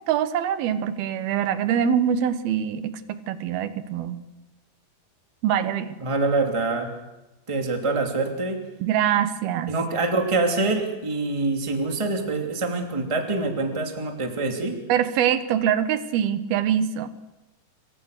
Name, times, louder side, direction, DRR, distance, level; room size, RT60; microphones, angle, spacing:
voice 1, 0.1-4.2 5.4-6.0 8.8-9.7 14.9-17.1, right 9 dB, 80° right, 11 dB, 3.2 m, -24 dB
voice 2, 6.0-6.9 7.5-8.6 9.7-14.8, right 3 dB, 10° right, 3 dB, 2.4 m, -25 dB
27.5 x 25.0 x 6.7 m, 1.0 s
omnidirectional pair, 4.4 m